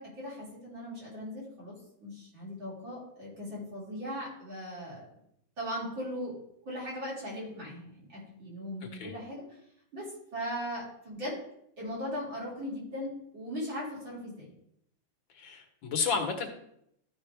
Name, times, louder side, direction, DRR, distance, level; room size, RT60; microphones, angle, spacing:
voice 1, 0.0-5.0 5.6-6.3 6.6-9.4 9.9-10.1 10.3-11.4 11.8-14.5, equal, 75° right, -7 dB, 4.8 m, -38 dB
voice 2, 15.3-16.5, left 5 dB, 70° left, 4 dB, 2.0 m, -32 dB
14.0 x 5.3 x 3.3 m, 0.73 s
omnidirectional pair, 2.2 m